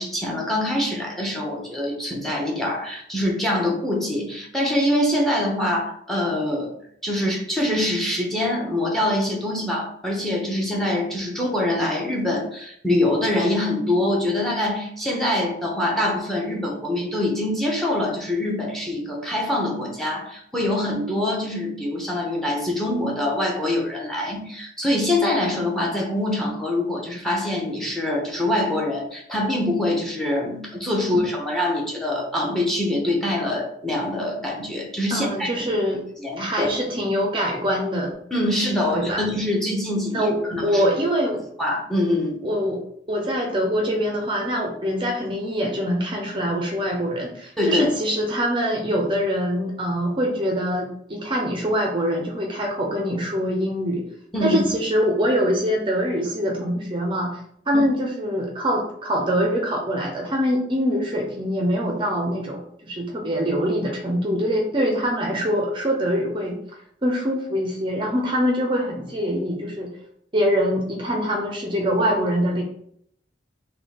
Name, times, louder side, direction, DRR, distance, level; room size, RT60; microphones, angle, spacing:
voice 1, 0.0-6.7 7.0-35.6 36.2-36.7 38.3-40.8 41.6-42.4 47.6-47.9 54.3-54.6 57.7-57.8, left 1 dB, ahead, 0 dB, 0.8 m, -24 dB
voice 2, 35.1-36.0 36.4-38.1 38.9-39.2 40.1-40.4 40.6-41.4 42.4-42.8 43.1-54.0 54.4-57.4 57.7-66.6 67.0-69.9 70.3-72.6, equal, 25° right, 0 dB, 0.6 m, -24 dB
3.7 x 2.8 x 4.1 m, 0.68 s
head